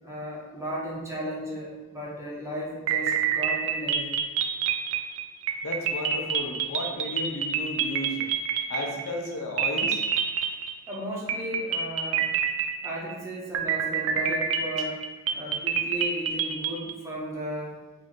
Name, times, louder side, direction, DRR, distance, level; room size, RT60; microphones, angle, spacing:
voice 1, 0.0-4.2 10.9-12.3 12.8-15.0 15.3-17.7, right 1 dB, 10° right, -5 dB, 0.7 m, -35 dB
sound 1, 2.9-9.3 9.6-11.0 11.3-13.1 13.5-16.9, right 7 dB, 60° right, 0.3 m, -27 dB
voice 2, 5.6-8.3 8.7-10.0, left 1 dB, 60° left, 1 dB, 0.5 m, -33 dB
3.1 x 2.6 x 3.6 m, 1.1 s
head